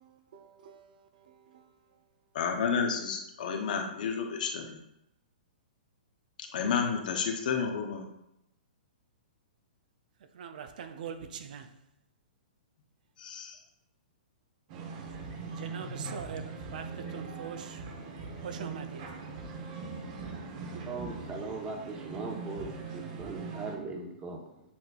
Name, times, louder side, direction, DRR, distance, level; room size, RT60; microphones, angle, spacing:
voice 1, 0.0-2.1 10.2-11.8 15.0-17.9 18.4-19.2, right 7 dB, 65° right, 0.5 m, -44 dB
voice 2, 2.3-4.8 6.4-8.1 13.2-13.6, left 6 dB, 65° left, 0.7 m, -31 dB
sound 1, 14.7-23.8, right 4 dB, 45° right, 0.9 m, -41 dB
voice 3, 20.9-24.6, right 3 dB, 20° right, 0.9 m, -39 dB
6.9 x 3.2 x 2.3 m
hypercardioid pair, 135°, 5 cm